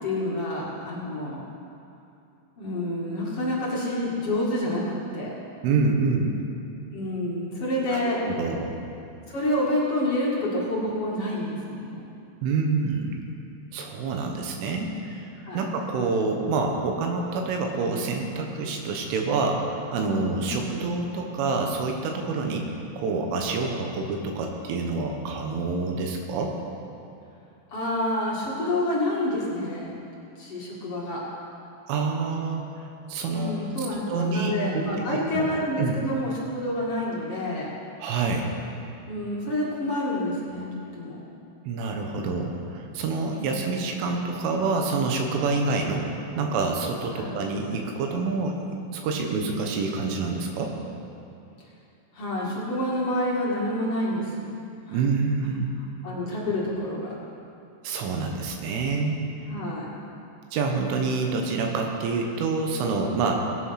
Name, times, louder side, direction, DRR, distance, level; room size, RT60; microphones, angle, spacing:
voice 1, 0.0-1.4 2.6-5.3 6.9-8.2 9.3-12.0 15.4-15.6 20.4-20.6 27.7-30.0 30.4-31.2 33.3-37.7 39.1-41.2 43.3-43.7 47.2-47.4 52.1-54.5 54.9-55.0 56.0-57.1 59.5-59.9, left 1 dB, 45° left, -6 dB, 2.1 m, -28 dB
voice 2, 5.6-6.4 7.9-8.7 12.4-13.1 13.7-22.7 23.0-26.5 31.9-35.1 35.3-35.5 35.8-35.9 38.0-38.5 41.7-46.1 46.4-48.6 48.9-50.7 54.9-55.7 57.8-59.2 60.5-63.4, right 4 dB, 90° right, 2 dB, 3.7 m, -27 dB
18.5 x 8.2 x 5.8 m, 2.6 s
omnidirectional pair, 5.5 m